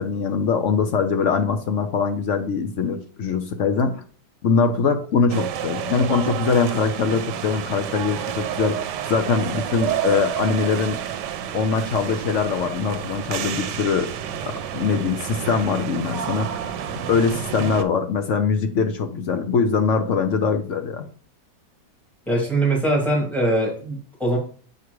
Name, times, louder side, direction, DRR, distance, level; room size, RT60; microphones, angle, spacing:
voice 1, 0.0-4.0 4.4-8.8 9.1-11.0 11.5-14.1 14.7-16.5 17.1-21.0, left 5 dB, 65° left, 7 dB, 0.8 m, -22 dB
sound 1, 5.3-17.8, right 9 dB, 75° right, 1.2 m, -29 dB
voice 2, 22.3-24.4, right 1 dB, ahead, -3 dB, 2.6 m, -22 dB
7.2 x 4.7 x 3.1 m, 0.42 s
omnidirectional pair, 2.0 m